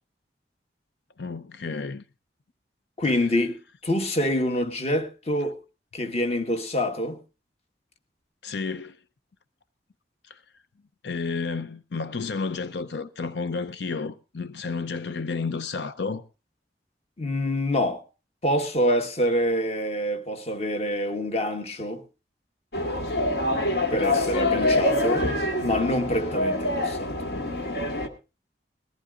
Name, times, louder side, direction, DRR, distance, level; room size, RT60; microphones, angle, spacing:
voice 1, 1.2-2.0 8.4-9.0 10.3-10.4 11.0-16.2, left 4 dB, 85° left, 0.6 m, -31 dB
voice 2, 3.0-5.6 5.9-7.2 17.2-18.0 18.4-22.0 23.9-25.3 25.6-27.1, left 1 dB, 35° left, 1.3 m, -26 dB
sound 1, 22.7-28.1, left 1 dB, 65° left, 1.9 m, -25 dB
20.0 x 14.5 x 2.5 m
head